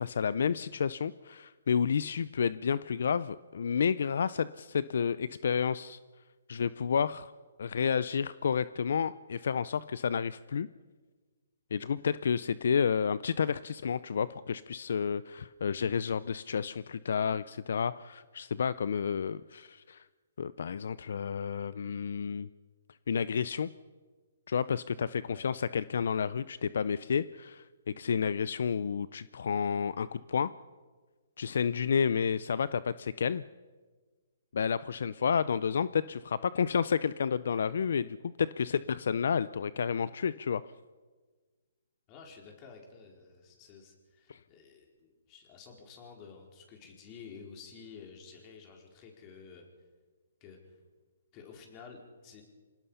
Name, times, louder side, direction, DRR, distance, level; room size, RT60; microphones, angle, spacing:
voice 1, 0.0-6.0 6.5-7.3 7.6-10.7 11.7-20.0 20.4-22.5 23.1-23.7 24.5-30.5 31.4-33.4 34.5-40.6 44.3-44.4, left 6 dB, 70° left, 17 dB, 0.5 m, -30 dB
voice 2, 38.6-39.1 42.1-49.7 50.4-50.8 51.3-52.4, left 5 dB, 30° left, 2 dB, 4.5 m, -51 dB
27.0 x 18.0 x 5.7 m, 1.4 s
hypercardioid pair, 150°, 0 cm